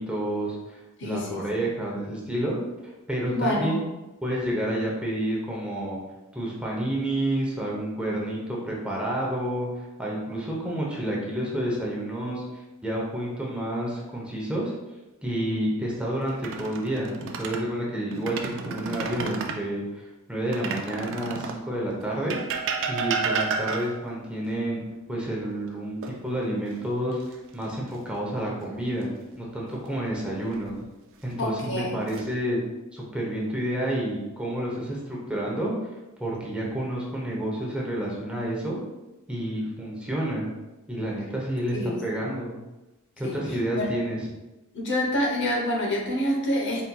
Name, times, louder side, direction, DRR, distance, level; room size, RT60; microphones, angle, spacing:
voice 1, 0.0-2.6 2.8-3.8 4.2-6.0 6.3-9.7 10.0-12.4 12.8-14.7 15.2-20.0 20.3-24.8 25.1-29.1 29.4-30.7 31.2-32.6 32.9-35.7 36.2-38.8 39.3-40.5 40.9-42.6 43.2-44.2, right 1 dB, 5° right, -4 dB, 0.8 m, -29 dB
voice 2, 1.0-1.4 3.3-3.8 31.4-32.0 41.7-42.3 43.2-43.4 43.8-43.9 44.7-46.8, left 1 dB, 55° left, -1 dB, 0.9 m, -27 dB
sound 1, 16.3-17.7 18.1-19.6 20.5-21.7 22.3-24.1 26.0-26.7 27.1-27.3 30.2-30.8 31.6-32.2, right 5 dB, 60° right, 0.5 m, -31 dB
4.3 x 4.1 x 2.3 m, 1.0 s
head